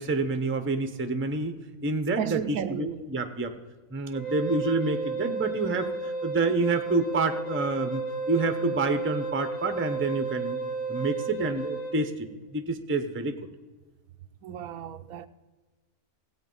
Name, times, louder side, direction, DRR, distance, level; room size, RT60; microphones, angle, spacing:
voice 1, 0.0-1.5 1.8-2.4 2.7-3.5 3.9-8.0 8.3-10.6 10.9-13.3, right 3 dB, 15° right, 0.5 m, -28 dB
voice 2, 2.2-3.0 14.4-15.3, right 9 dB, 75° right, 1.0 m, -33 dB
Wind instrument woodwind instrument, 4.1-12.0, right 3 dB, 55° left, 2.0 m, -33 dB
17.0 x 8.3 x 5.4 m
omnidirectional pair, 1.5 m